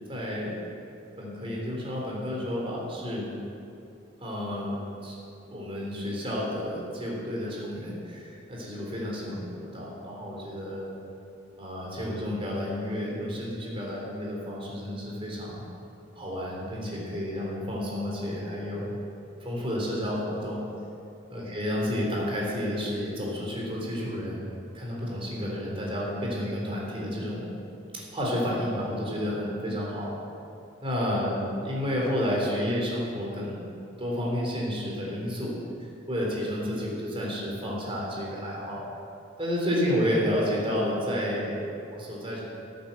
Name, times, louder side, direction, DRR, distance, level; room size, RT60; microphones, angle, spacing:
voice 1, 0.1-0.5 1.2-3.3 4.2-5.1 5.5-10.9 11.6-15.7 16.2-19.0 19.4-20.6 21.3-27.6 28.1-30.1 30.8-33.6 34.0-35.5 36.1-38.8 39.4-42.4, equal, 30° right, -3 dB, 3.7 m, -31 dB
12.5 x 9.2 x 7.8 m, 2.7 s
head